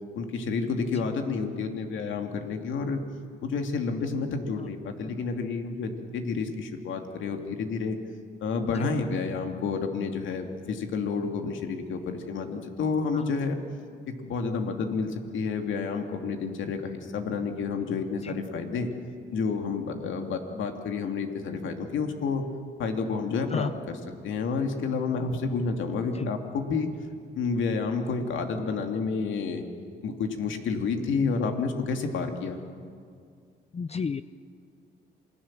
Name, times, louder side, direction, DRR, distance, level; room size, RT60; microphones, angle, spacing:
voice 1, 0.1-3.0 3.4-8.0 8.4-13.6 14.1-18.9 19.3-22.5 22.8-23.7 24.2-26.9 27.3-29.6 30.0-32.6, left 4 dB, 75° left, 5 dB, 2.7 m, -30 dB
voice 2, 33.7-34.2, left 5 dB, 30° left, 13 dB, 0.7 m, -32 dB
27.5 x 20.5 x 7.6 m, 2.2 s
cardioid pair, 90°, 20 cm